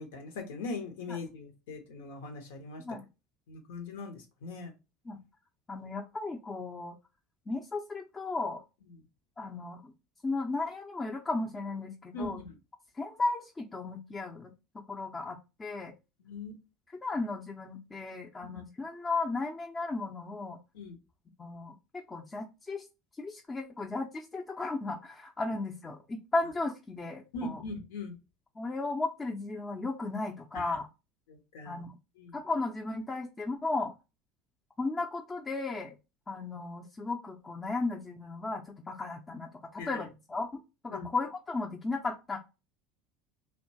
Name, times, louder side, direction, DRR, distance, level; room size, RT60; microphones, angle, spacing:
voice 1, 0.0-2.8 3.5-4.7 12.1-12.6 16.2-16.5 18.4-18.6 20.7-21.0 27.3-28.2 30.5-30.6 31.3-31.8 32.2-32.4 39.8-40.0 40.9-41.1, left 3 dB, 80° left, 5 dB, 0.8 m, -40 dB
voice 2, 5.7-6.9 7.5-8.6 9.4-9.9 10.2-12.4 12.9-14.5 14.9-15.9 16.9-20.6 21.4-22.9 23.2-27.6 28.6-30.9 31.7-32.0 32.3-33.9 34.8-35.9 36.3-42.4, left 3 dB, 20° left, 0 dB, 0.5 m, -35 dB
2.8 x 2.2 x 2.7 m, 0.27 s
hypercardioid pair, 85°, 0 cm